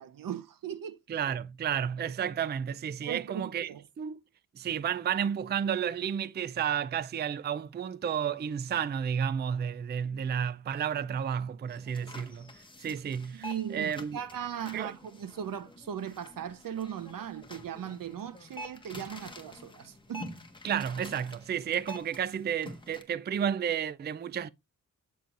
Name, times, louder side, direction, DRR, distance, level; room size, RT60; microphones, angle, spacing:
voice 1, 0.0-1.0 3.0-3.8 13.3-20.4, right 9 dB, 85° right, 0.9 m, -38 dB
voice 2, 1.1-3.7 4.0-4.2 4.6-12.5 12.8-13.5 13.7-14.2 14.7-14.9 20.6-24.5, right 8 dB, 30° right, 0.4 m, -31 dB
sound 1, 11.7-23.0, left 2 dB, 15° left, 1.2 m, -48 dB
7.7 x 6.9 x 2.4 m
wide cardioid pair, 150°, 33 cm